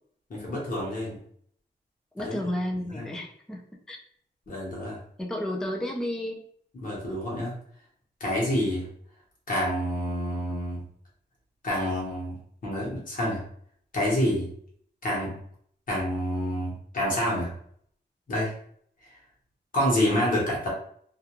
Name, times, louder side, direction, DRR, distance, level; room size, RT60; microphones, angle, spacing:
voice 1, 0.3-1.2 2.2-2.4 2.9-3.1 4.5-5.0 6.8-7.6 8.2-8.9 9.5-10.8 11.6-12.4 12.6-13.4 13.9-14.5 15.0-15.4 15.9-17.5 18.3-18.5 19.7-20.7, equal, 50° left, -4 dB, 1.0 m, -27 dB
voice 2, 2.1-4.0 5.2-6.5, left 1 dB, 5° left, 0 dB, 0.4 m, -32 dB
2.4 x 2.2 x 2.9 m, 0.62 s
wide cardioid pair, 135°, 18 cm